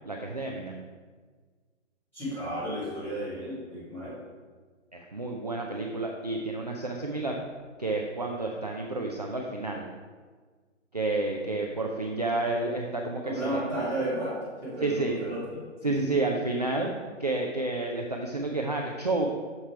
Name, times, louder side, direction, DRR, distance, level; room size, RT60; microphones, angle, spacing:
voice 1, 0.1-0.8 4.9-7.4 7.8-9.9 10.9-13.7 14.8-15.1 15.8-16.9 17.2-19.3, right 2 dB, 35° right, 0 dB, 0.4 m, -30 dB
voice 2, 2.1-4.2 13.2-14.3 14.6-16.1, right 1 dB, 5° left, -14 dB, 2.5 m, -33 dB
6.7 x 6.0 x 4.6 m, 1.5 s
hypercardioid pair, 180°, 37 cm